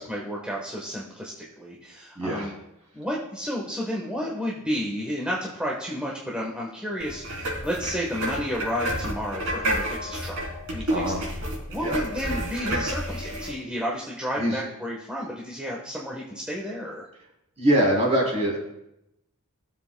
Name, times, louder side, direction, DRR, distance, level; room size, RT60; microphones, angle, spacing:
voice 1, 0.0-2.5 2.9-10.4 10.7-11.2 11.7-17.1, equal, 5° right, -4 dB, 1.2 m, -31 dB
voice 2, 2.1-2.5 10.9-11.2 11.8-12.0 14.4-14.6 17.6-18.6, right 1 dB, 30° right, -2 dB, 3.2 m, -23 dB
sound 1, 7.0-13.5, right 1 dB, 60° right, 3.4 m, -30 dB
18.5 x 7.5 x 2.3 m, 0.83 s
head